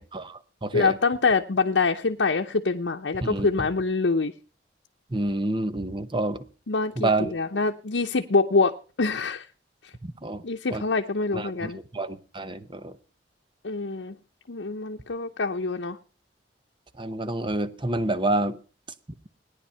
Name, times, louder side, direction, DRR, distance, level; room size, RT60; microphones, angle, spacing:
voice 1, 0.0-1.0 3.2-3.5 5.1-6.4 7.0-7.3 10.0-10.4 10.7-10.8 11.3-12.9 17.0-18.6, right 2 dB, 30° right, 12 dB, 0.9 m, -28 dB
voice 2, 0.7-4.3 6.7-9.4 10.4-11.8 13.6-14.1 14.5-16.0, left 4 dB, 80° left, 3 dB, 0.8 m, -25 dB
18.0 x 10.0 x 5.6 m, 0.39 s
head